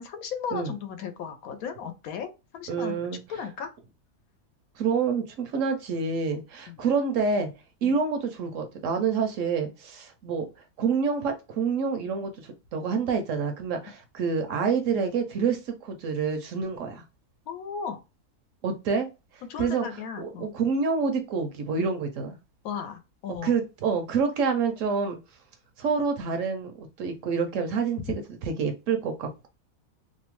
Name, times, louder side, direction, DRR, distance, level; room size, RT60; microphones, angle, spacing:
voice 1, 0.0-2.9 3.3-3.7 6.7-6.8 7.8-8.0 17.5-18.0 19.5-20.5 22.6-23.6 28.1-28.2, left 7 dB, 80° left, 1.0 m, -35 dB
voice 2, 2.7-3.2 4.8-7.5 7.8-10.5 10.8-17.0 18.6-19.1 19.3-19.8 20.2-22.4 23.4-25.2 25.8-28.2 28.6-29.5, right 5 dB, 70° right, 0.9 m, -27 dB
2.8 x 2.1 x 2.9 m
omnidirectional pair, 1.5 m